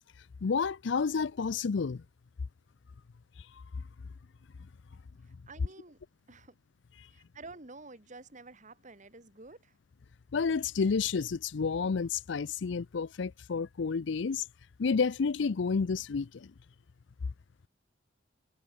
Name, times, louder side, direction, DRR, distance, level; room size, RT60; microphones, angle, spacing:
voice 1, 0.4-2.0 10.3-14.5 14.8-16.5, left 5 dB, 65° left, 0.5 m, -30 dB
voice 2, 5.2-6.0 6.3-6.6 7.1-9.8, right 3 dB, 40° right, 1.9 m, -50 dB
head